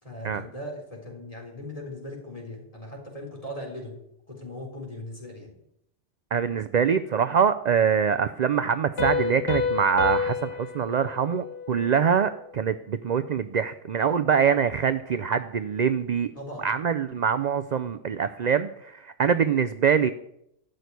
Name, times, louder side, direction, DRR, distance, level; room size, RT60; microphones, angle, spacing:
voice 1, 0.0-3.9 4.3-5.6 16.3-16.7, left 1 dB, 30° left, 0 dB, 3.8 m, -39 dB
voice 2, 6.3-16.3 16.6-20.1, right 7 dB, 50° right, 12 dB, 0.5 m, -24 dB
Piano, 9.0-12.4, left 5 dB, 85° left, 2.1 m, -30 dB
12.5 x 6.5 x 9.4 m, 0.77 s
omnidirectional pair, 1.2 m